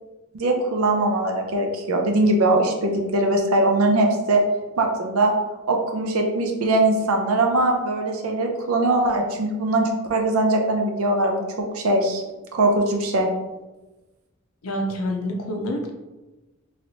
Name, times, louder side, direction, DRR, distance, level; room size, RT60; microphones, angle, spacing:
voice 1, 0.3-4.4 4.8-5.3 5.7-11.4 11.7-12.2 12.5-13.3, right 2 dB, 90° right, 2 dB, 0.5 m, -21 dB
voice 2, 14.6-15.9, equal, 90° left, 2 dB, 0.6 m, -27 dB
3.1 x 2.9 x 2.7 m, 1.1 s
head